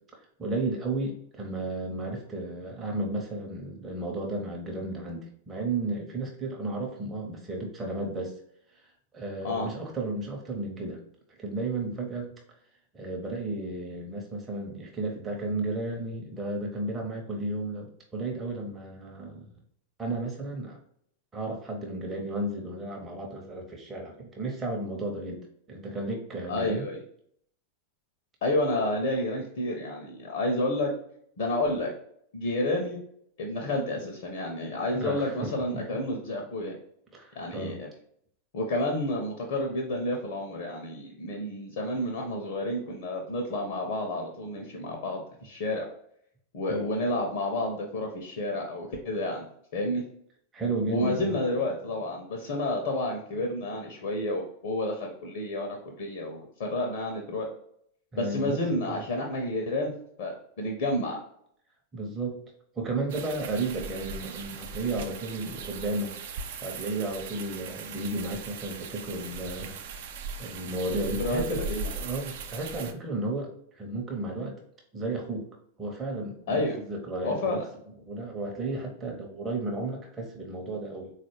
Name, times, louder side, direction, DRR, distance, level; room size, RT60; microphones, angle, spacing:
voice 1, 0.4-8.3 8.7-11.0 11.4-12.3 12.9-19.5 20.0-20.8 21.3-25.4 25.7-26.9 34.9-35.8 37.1-37.8 46.7-46.9 50.5-51.4 58.1-59.0 61.9-62.4 62.8-66.2 66.6-69.8 70.1-71.6 71.9-74.6 74.9-75.5 75.8-77.6 78.1-81.1, right 2 dB, 20° right, 0 dB, 0.7 m, -33 dB
voice 2, 26.5-27.0 28.4-30.9 31.4-31.9 32.3-33.0 33.4-36.8 37.4-37.9 38.5-45.9 46.5-49.5 49.7-50.0 50.9-57.5 58.2-59.9 60.2-61.2 71.2-71.9 76.5-76.8 77.2-77.6, left 1 dB, 50° left, 1 dB, 0.6 m, -30 dB
sound 1, 63.1-72.9, right 4 dB, 55° right, 0.4 m, -39 dB
3.8 x 2.4 x 3.1 m, 0.68 s
figure-of-eight pair, 90°, 0 cm